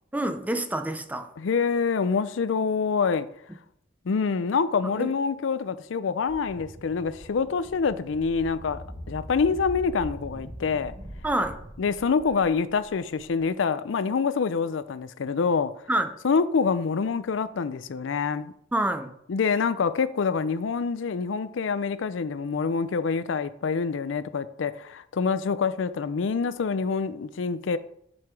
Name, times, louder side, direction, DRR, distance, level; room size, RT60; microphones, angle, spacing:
voice 1, 0.1-1.3 5.0-5.1 11.2-11.6 15.9-16.1 18.7-19.1, right 1 dB, 10° right, 0.5 m, -27 dB
voice 2, 1.4-3.3 4.1-8.8 9.1-10.9 11.8-15.7 16.2-18.5 19.3-27.8, left 5 dB, 75° left, 0.4 m, -26 dB
sound 1, 6.3-13.4, equal, 25° right, 1.6 m, -42 dB
7.6 x 5.6 x 4.7 m
head